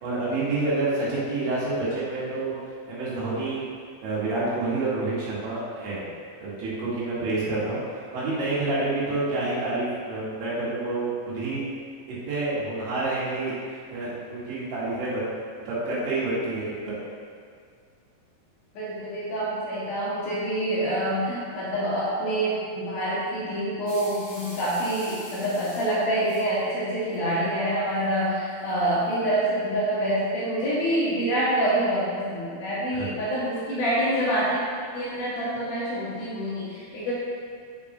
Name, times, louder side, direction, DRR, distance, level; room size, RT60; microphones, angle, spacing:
voice 1, 0.0-2.6 2.9-3.6 4.0-6.1 6.4-7.8 8.1-11.1 11.3-11.6 12.3-15.3 15.7-17.0 33.0-33.1, right 2 dB, 80° right, -8 dB, 4.0 m, -28 dB
voice 2, 18.7-34.6 34.9-37.1, right 1 dB, 85° left, -8 dB, 1.5 m, -26 dB
sound 1, 23.9-29.1, left 1 dB, 50° left, 1.4 m, -45 dB
8.9 x 7.2 x 2.6 m, 2.1 s
omnidirectional pair, 5.2 m